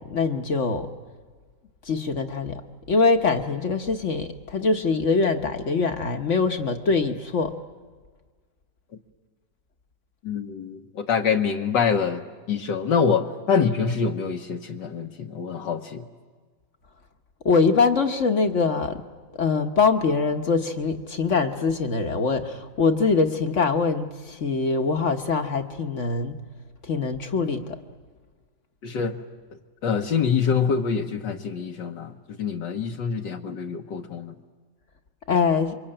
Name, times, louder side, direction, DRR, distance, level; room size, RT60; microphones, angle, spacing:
voice 1, 0.1-0.9 1.9-2.6 2.9-7.5 17.4-19.0 19.4-26.4 26.8-27.8 35.3-35.8, left 4 dB, 45° left, 6 dB, 1.3 m, -23 dB
voice 2, 10.2-12.2 12.5-16.0 28.8-29.2 29.8-34.3, left 6 dB, 70° left, 3 dB, 1.7 m, -25 dB
28.0 x 24.0 x 8.8 m, 1.5 s
omnidirectional pair, 2.0 m